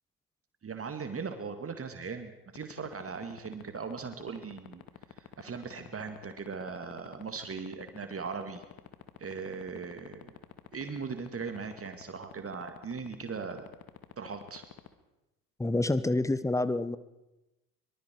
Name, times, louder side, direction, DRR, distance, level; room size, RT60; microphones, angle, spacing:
voice 1, 0.6-4.8 5.4-8.6 9.2-10.3 10.7-13.7 14.2-14.6, right 5 dB, 25° right, 7 dB, 2.2 m, -39 dB
sound 1, 2.5-14.9, left 14 dB, 45° left, 1.9 m, -46 dB
voice 2, 15.6-17.0, left 2 dB, 5° left, 15 dB, 1.2 m, -27 dB
24.0 x 24.0 x 4.6 m, 0.97 s
figure-of-eight pair, 60°, 49 cm